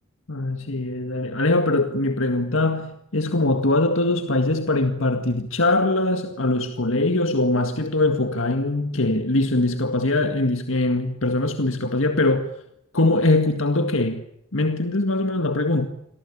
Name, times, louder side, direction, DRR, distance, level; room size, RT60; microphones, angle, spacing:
voice 1, 0.3-12.5 12.9-14.2 14.5-15.9, left 2 dB, 65° left, 2.0 m, -22 dB
28.5 x 23.5 x 8.7 m
head